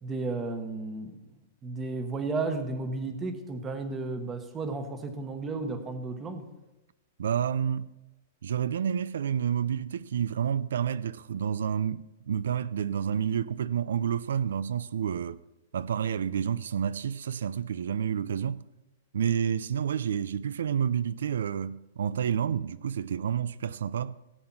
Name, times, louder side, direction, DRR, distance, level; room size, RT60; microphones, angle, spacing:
voice 1, 0.0-1.1 1.6-6.5, right 3 dB, 15° right, 1.1 m, -33 dB
voice 2, 7.2-7.9 8.4-15.4 15.7-18.6 19.1-24.2, right 8 dB, 90° right, 0.4 m, -29 dB
16.5 x 8.6 x 5.9 m
supercardioid pair, 170°, 0 cm